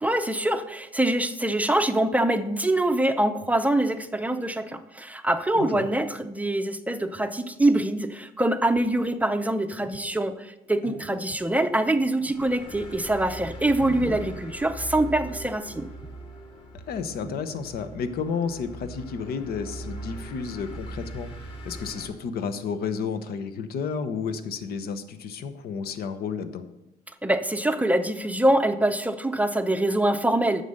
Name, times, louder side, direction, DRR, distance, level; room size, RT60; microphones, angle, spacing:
voice 1, 0.0-15.9 27.2-30.6, right 1 dB, 10° right, 8 dB, 0.6 m, -24 dB
voice 2, 5.6-5.9 13.8-14.0 16.9-26.7, left 6 dB, 65° left, 10 dB, 1.0 m, -32 dB
sound 1, 8.7-8.8 9.1-9.2 9.7-10.2 10.6-12.6 13.1-13.2 13.6-15.7 16.0-16.1 16.3-16.4 16.7-16.8 17.2-17.3, right 2 dB, 85° left, 3.9 m, -43 dB
sound 2, 12.2-22.1, right 1 dB, 35° left, 2.2 m, -40 dB
9.2 x 6.7 x 6.5 m, 0.93 s
cardioid pair, 110°, 17 cm